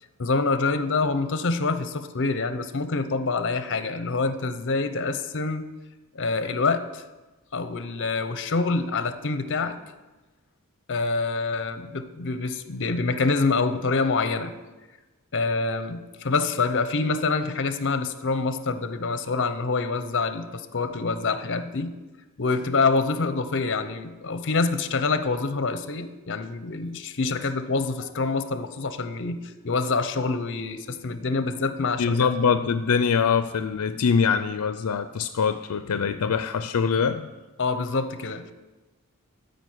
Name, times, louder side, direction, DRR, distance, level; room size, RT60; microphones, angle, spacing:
voice 1, 0.2-5.7 6.1-7.1 7.5-9.8 10.9-14.5 15.3-22.0 22.4-32.3 37.6-38.5, left 3 dB, 55° left, 11 dB, 0.8 m, -26 dB
voice 2, 32.0-37.3, left 6 dB, 85° left, 10 dB, 0.5 m, -23 dB
12.5 x 5.2 x 7.9 m, 1.2 s
head